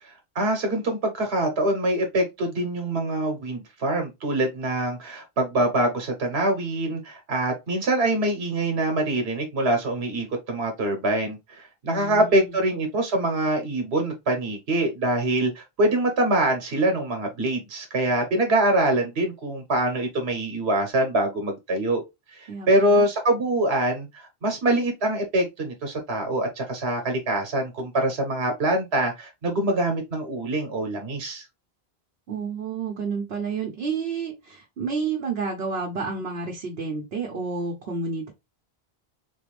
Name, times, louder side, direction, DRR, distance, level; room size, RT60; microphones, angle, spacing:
voice 1, 0.0-22.0 22.3-31.4, right 1 dB, 90° right, 1.2 m, -24 dB
voice 2, 11.8-12.6 22.5-23.1 32.3-38.3, right 4 dB, 75° right, 1.1 m, -30 dB
4.2 x 2.5 x 3.1 m
omnidirectional pair, 1.0 m